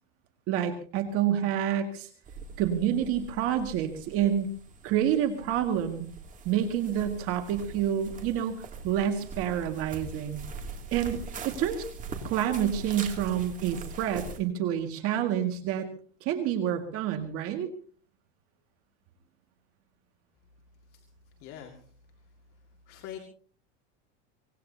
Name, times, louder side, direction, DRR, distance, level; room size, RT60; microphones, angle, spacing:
voice 1, 0.5-2.1 2.6-4.5 4.8-6.1 6.5-10.4 10.9-11.2 11.4-11.9 12.3-15.9 16.2-17.7, right 10 dB, 40° right, 5 dB, 2.0 m, -28 dB
sound 1, 2.2-14.4, right 4 dB, 20° right, 2.6 m, -42 dB
voice 2, 21.4-21.9 22.9-23.2, left 10 dB, 40° left, 3 dB, 2.2 m, -43 dB
24.5 x 20.0 x 2.8 m, 0.42 s
supercardioid pair, 160°, 35 cm